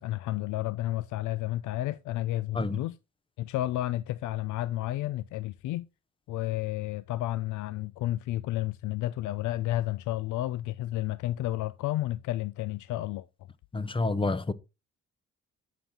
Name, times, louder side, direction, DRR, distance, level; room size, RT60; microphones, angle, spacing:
voice 1, 0.0-3.0 3.4-5.9 6.3-13.3, left 15 dB, 80° left, 0.5 m, -31 dB
voice 2, 13.7-14.5, left 3 dB, 15° left, 0.7 m, -28 dB
9.5 x 5.8 x 3.6 m
cardioid pair, 90°, 30 cm